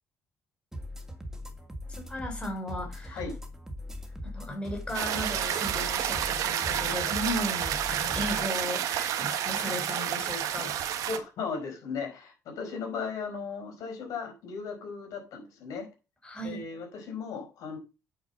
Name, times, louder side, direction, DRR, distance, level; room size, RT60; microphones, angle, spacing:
sound 1, 0.7-8.5, left 1 dB, 10° right, 2.4 m, -40 dB
voice 1, 2.0-3.2 4.2-10.8 16.2-16.6, left 1 dB, 15° left, 4.0 m, -36 dB
sound 2, 4.9-11.2, right 10 dB, 80° right, 1.5 m, -30 dB
voice 2, 11.1-15.9 16.4-17.8, left 5 dB, 75° left, 5.0 m, -36 dB
8.9 x 5.3 x 7.0 m
cardioid pair, 100°, 6 cm